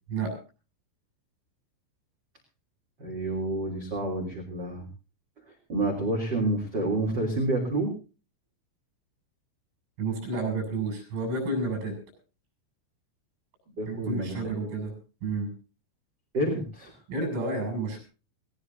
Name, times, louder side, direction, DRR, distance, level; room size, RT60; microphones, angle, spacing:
voice 1, 3.0-4.9 5.5-8.0 13.8-14.3 16.3-16.9, right 2 dB, 25° right, 1 dB, 2.8 m, -29 dB
voice 2, 10.0-11.9 13.9-14.9 15.2-15.5 17.1-18.0, right 3 dB, 90° right, 4 dB, 9.4 m, -30 dB
21.0 x 19.0 x 2.7 m, 0.35 s
omnidirectional pair, 5.7 m